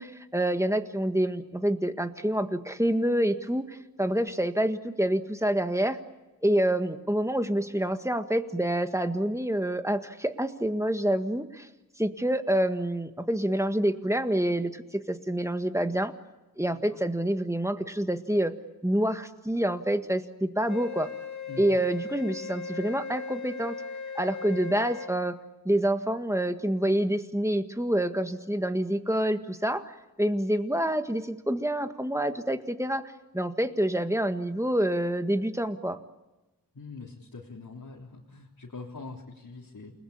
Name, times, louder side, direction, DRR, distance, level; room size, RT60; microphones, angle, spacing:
voice 1, 0.0-6.0 6.4-11.7 12.0-16.1 16.6-18.5 18.8-21.1 21.6-23.8 24.2-25.4 25.7-29.9 30.2-33.0 33.3-36.0, right 1 dB, 10° right, 8 dB, 1.7 m, -27 dB
Wind instrument woodwind instrument, 20.7-25.1, left 5 dB, 50° left, 2.3 m, -38 dB
voice 2, 21.5-21.8 36.7-39.9, left 3 dB, 65° left, -4 dB, 3.7 m, -43 dB
29.0 x 20.0 x 8.7 m, 1.0 s
wide cardioid pair, 60°, 37 cm